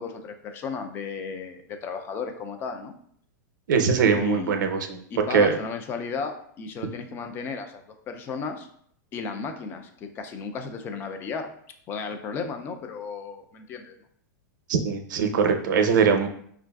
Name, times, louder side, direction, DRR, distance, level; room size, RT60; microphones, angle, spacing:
voice 1, 0.0-2.9 4.2-4.6 5.1-8.7 9.1-11.5 11.9-14.0, left 5 dB, 20° left, 6 dB, 0.4 m, -34 dB
voice 2, 3.7-5.0 5.3-5.6 14.7-16.3, right 5 dB, 80° right, 5 dB, 0.6 m, -21 dB
5.3 x 2.4 x 2.3 m, 0.64 s
supercardioid pair, 155°, 10 cm